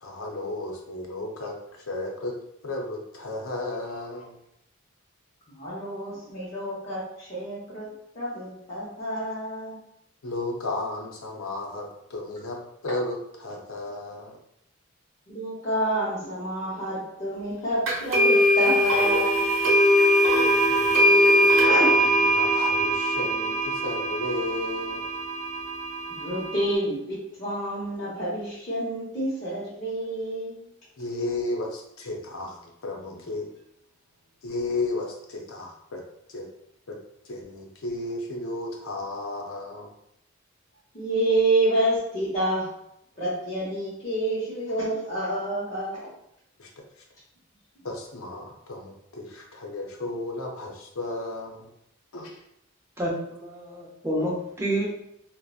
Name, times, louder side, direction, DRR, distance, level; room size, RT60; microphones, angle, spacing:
voice 1, 0.0-2.3 2.6-4.4 10.2-12.6 12.8-14.4 20.7-21.6 21.9-25.1 31.0-33.5 34.4-36.0 36.3-36.5 36.9-37.0 37.3-39.9 46.6-46.7 47.8-51.7 52.1-52.4, left 2 dB, 85° left, 0 dB, 0.5 m, -33 dB
voice 2, 5.5-9.8 15.3-19.5 21.6-21.9 26.2-30.6 40.9-42.7 43.2-46.0, right 1 dB, 35° left, -10 dB, 0.6 m, -28 dB
sound 1, 17.9-26.7, equal, 85° right, 0.7 m, -21 dB
voice 3, 53.0-54.9, right 1 dB, 15° right, -3 dB, 0.5 m, -29 dB
2.6 x 2.0 x 2.3 m, 0.77 s
head